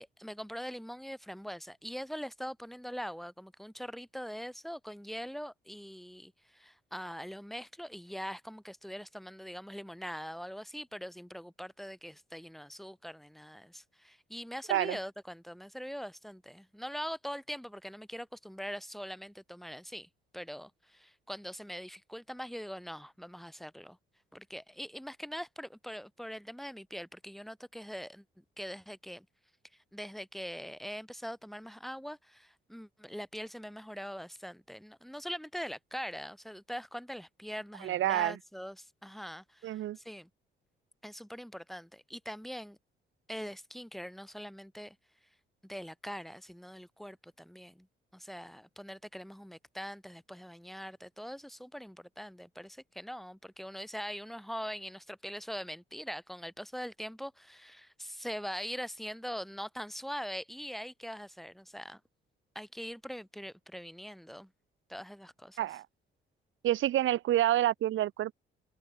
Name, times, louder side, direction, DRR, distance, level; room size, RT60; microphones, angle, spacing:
voice 1, 0.0-24.0 24.3-29.3 29.7-40.3 41.0-42.8 43.3-45.0 45.6-47.9 48.1-62.0 62.5-64.5 64.9-65.6, equal, ahead, 2.6 m, -42 dB
voice 2, 37.8-38.4 39.6-40.0 65.6-65.9 66.6-68.3, right 13 dB, 80° right, 2.1 m, -28 dB
cardioid pair, 90°, 20 cm